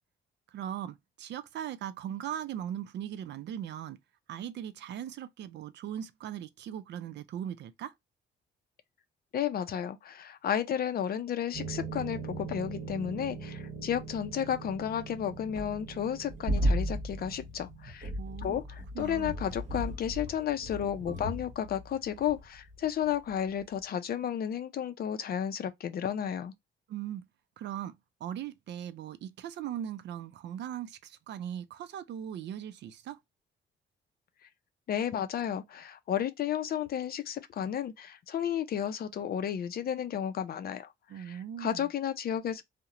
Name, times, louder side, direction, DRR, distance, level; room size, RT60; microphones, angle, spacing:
voice 1, 0.5-4.0 4.3-7.9 18.2-18.6 19.0-19.3 26.9-27.3 27.6-27.9 28.2-33.2 41.1-41.9, right 10 dB, 65° right, 0.4 m, -39 dB
voice 2, 9.3-18.1 18.4-26.5 34.9-40.9 41.1-42.6, left 9 dB, 50° left, 0.4 m, -32 dB
sound 1, 11.5-23.1 23.3-23.6, right 1 dB, 40° right, 1.1 m, -36 dB
2.4 x 2.1 x 2.8 m
cardioid pair, 90°, 20 cm